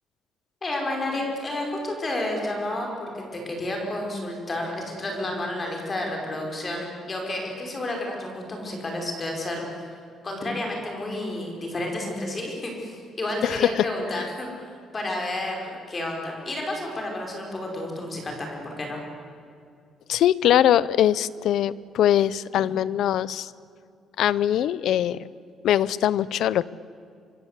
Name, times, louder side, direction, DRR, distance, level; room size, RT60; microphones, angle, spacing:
voice 1, 0.6-9.9 10.2-14.7 14.9-19.0, left 1 dB, 20° left, 1 dB, 5.3 m, -31 dB
voice 2, 13.4-13.8 14.1-14.3 20.1-23.5 24.2-25.2 25.6-26.7, left 11 dB, 65° left, 19 dB, 0.7 m, -22 dB
25.0 x 24.5 x 8.3 m, 2.4 s
cardioid pair, 180°, 0 cm